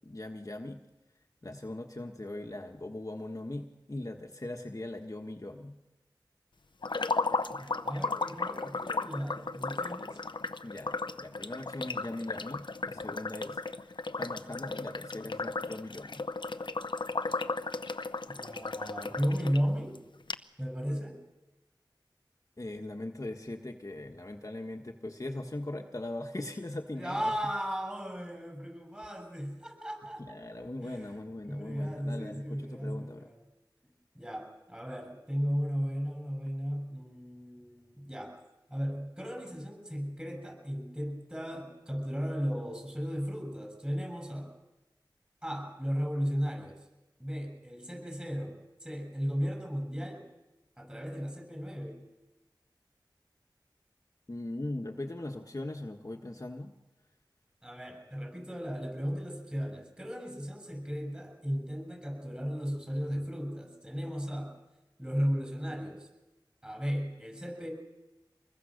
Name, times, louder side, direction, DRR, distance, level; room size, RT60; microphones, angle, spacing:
voice 1, 0.0-0.8 1.4-5.7 10.6-13.6 14.1-16.2 22.6-27.3 30.2-33.3 54.3-56.7, left 1 dB, 45° left, 3 dB, 1.4 m, -40 dB
sound 1, 6.8-19.6 19.9-20.0 20.3-20.4, left 3 dB, 75° left, 0.8 m, -35 dB
voice 2, 7.6-10.2 18.3-20.0 20.6-21.2 27.0-30.4 30.8-33.4 34.1-38.4 38.7-44.5 45.4-46.8 47.2-48.6 48.8-50.2 50.8-52.0 57.6-64.5 65.0-66.1 66.6-67.7, equal, 10° right, 3 dB, 7.6 m, -35 dB
25.5 x 21.5 x 6.6 m, 1.1 s
wide cardioid pair, 45°, 8 cm